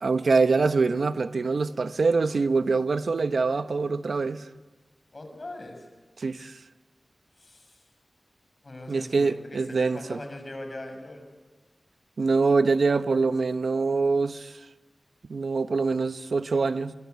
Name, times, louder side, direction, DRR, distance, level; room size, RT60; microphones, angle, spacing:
voice 1, 0.0-4.5 6.2-6.6 8.9-10.2 12.2-14.5 15.3-16.9, right 4 dB, 80° right, 0.9 m, -24 dB
voice 2, 5.1-5.9 7.4-7.8 8.6-11.3, left 1 dB, 50° left, 6.7 m, -40 dB
26.5 x 23.0 x 8.2 m
wide cardioid pair, 60°, 0 cm